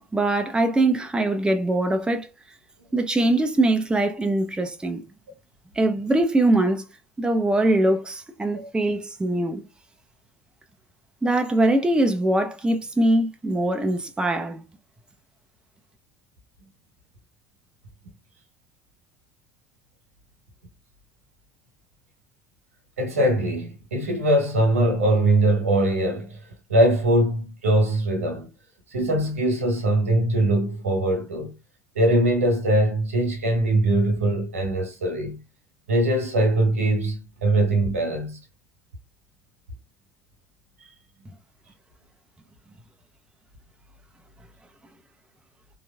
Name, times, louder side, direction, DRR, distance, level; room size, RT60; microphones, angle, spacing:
voice 1, 0.0-2.3 2.9-5.0 5.8-6.8 7.2-9.6 11.2-14.6, right 1 dB, 10° right, 0.5 m, -22 dB
voice 2, 23.0-28.5 28.9-31.5 31.9-35.4 35.9-38.4, right 1 dB, 80° right, 1.2 m, -22 dB
3.7 x 2.9 x 2.2 m
figure-of-eight pair, 65°, 8 cm